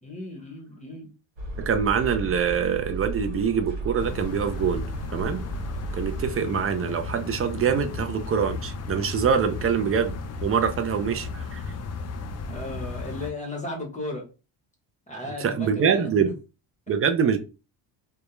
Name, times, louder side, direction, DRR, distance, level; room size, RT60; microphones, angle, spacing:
voice 1, 0.0-1.1 12.5-14.2 15.1-16.1 16.9-17.0, left 2 dB, 15° left, 0.8 m, -35 dB
sound 1, 1.4-6.4, right 2 dB, 65° right, 1.3 m, -35 dB
voice 2, 1.6-4.8 5.1-5.4 5.9-10.2 10.4-11.6 15.4-16.3 16.9-17.4, right 7 dB, 30° right, 0.4 m, -24 dB
sound 2, 4.0-13.3, left 4 dB, 35° left, 0.4 m, -34 dB
2.2 x 2.2 x 3.0 m
cardioid pair, 85°, 49 cm